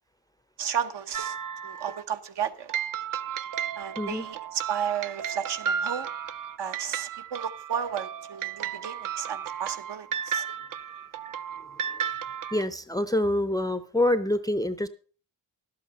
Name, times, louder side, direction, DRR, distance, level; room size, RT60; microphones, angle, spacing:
voice 1, 0.6-1.4 1.6-2.7 3.8-6.1 6.6-10.5, right 8 dB, 65° right, 1.1 m, -33 dB
sound 1, 1.1-2.0 2.7-12.6, right 8 dB, 50° right, 0.6 m, -34 dB
voice 2, 12.5-14.9, left 1 dB, 10° left, 0.5 m, -26 dB
12.0 x 8.4 x 5.3 m
wide cardioid pair, 135°, 44 cm